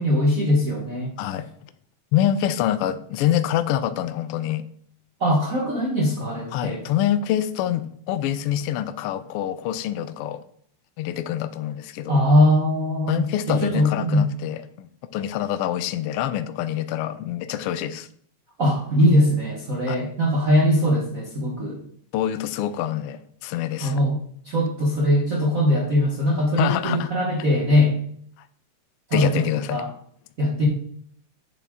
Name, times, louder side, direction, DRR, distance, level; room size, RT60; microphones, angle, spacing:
voice 1, 0.0-1.1 5.2-6.8 12.1-14.3 18.6-21.8 23.8-24.2 24.4-28.0 29.1-29.9 30.4-30.7, left 1 dB, 55° right, 0.9 m, -21 dB
voice 2, 2.1-4.7 6.5-10.4 11.0-12.2 13.1-18.1 19.9-20.0 22.1-24.0 26.6-27.1 29.1-29.8, left 11 dB, 90° left, 1.2 m, -26 dB
8.2 x 6.9 x 3.7 m
omnidirectional pair, 3.4 m